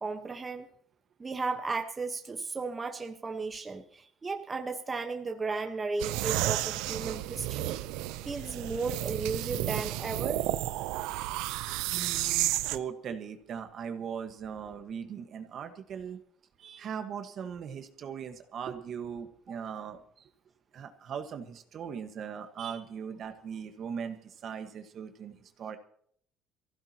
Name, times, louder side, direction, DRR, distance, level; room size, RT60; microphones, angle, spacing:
voice 1, 0.0-0.7 1.2-7.8 8.2-10.5, right 4 dB, 25° right, 5 dB, 1.2 m, -35 dB
sound 1, 6.0-12.8, right 15 dB, 90° right, 0.6 m, -32 dB
voice 2, 11.9-16.2 16.6-20.0 20.7-25.8, right 7 dB, 50° right, 7 dB, 1.5 m, -39 dB
23.5 x 15.5 x 2.9 m, 0.63 s
cardioid pair, 105°, 0 cm